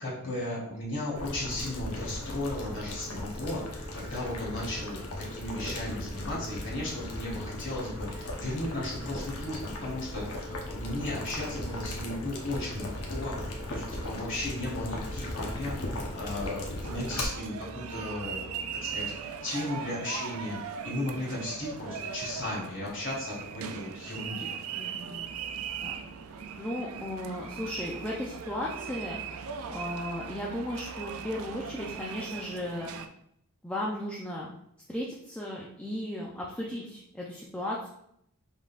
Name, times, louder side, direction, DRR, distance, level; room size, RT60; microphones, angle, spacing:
voice 1, 0.0-18.5 18.8-24.5, left 1 dB, 60° left, -6 dB, 1.8 m, -35 dB
Boiling, 1.2-17.2, left 1 dB, 90° left, 0.9 m, -37 dB
sound 1, 16.8-33.1, right 6 dB, 70° right, 0.4 m, -39 dB
voice 2, 24.8-25.3 25.8-26.0 26.6-29.2 29.7-32.9 33.6-34.5 34.9-37.9, left 1 dB, 5° left, -4 dB, 0.5 m, -35 dB
5.3 x 3.8 x 2.4 m, 0.74 s
head